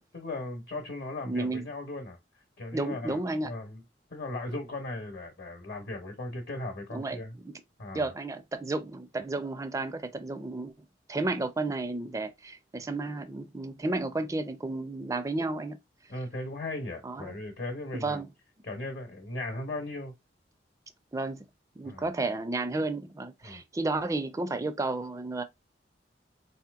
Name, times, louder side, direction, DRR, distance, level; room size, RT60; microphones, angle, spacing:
voice 1, 0.1-2.2 2.6-3.8 4.1-7.4 7.8-8.1 16.1-18.2 18.6-20.2 21.8-22.0 23.4-23.6, left 2 dB, 60° left, 0.9 m, -37 dB
voice 2, 1.2-1.6 2.7-3.5 6.9-7.2 7.4-7.5 7.9-10.7 11.1-15.8 17.0-17.3 18.0-18.3 21.1-21.5 21.8-25.4, right 2 dB, 20° right, 0.4 m, -32 dB
4.0 x 2.8 x 2.3 m
head